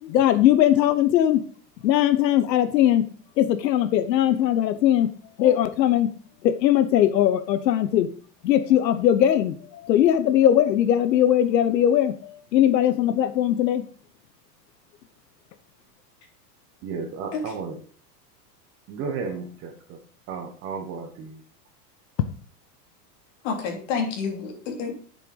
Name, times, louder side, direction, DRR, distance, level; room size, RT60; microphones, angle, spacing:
voice 1, 0.0-1.4 1.8-3.1 3.4-5.1 5.4-6.1 6.4-8.1 8.4-13.8, left 11 dB, 85° left, 12 dB, 1.1 m, -20 dB
voice 2, 16.8-17.8 18.9-20.0 20.3-21.4, right 5 dB, 25° right, 5 dB, 1.4 m, -33 dB
voice 3, 23.4-24.9, left 5 dB, 50° left, 2 dB, 3.2 m, -29 dB
7.9 x 6.9 x 5.4 m, 0.42 s
supercardioid pair, 165°, 49 cm